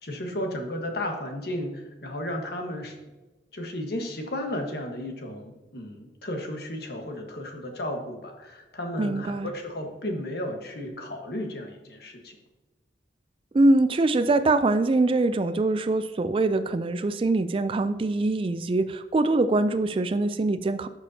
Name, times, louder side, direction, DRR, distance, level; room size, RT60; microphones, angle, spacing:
voice 1, 0.0-2.9 3.5-12.4, left 1 dB, 60° left, 3 dB, 1.4 m, -34 dB
voice 2, 9.0-9.5 13.5-20.9, right 2 dB, 30° right, 12 dB, 0.3 m, -23 dB
12.0 x 6.4 x 2.8 m, 1.2 s
head